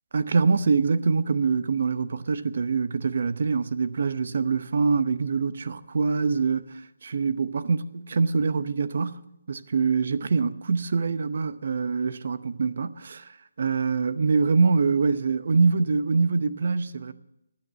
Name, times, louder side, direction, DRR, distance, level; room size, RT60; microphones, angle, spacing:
voice 1, 0.1-13.3 13.6-17.1, right 4 dB, 60° right, 0.8 m, -24 dB
13.0 x 9.6 x 7.6 m
hypercardioid pair, 160°, 0 cm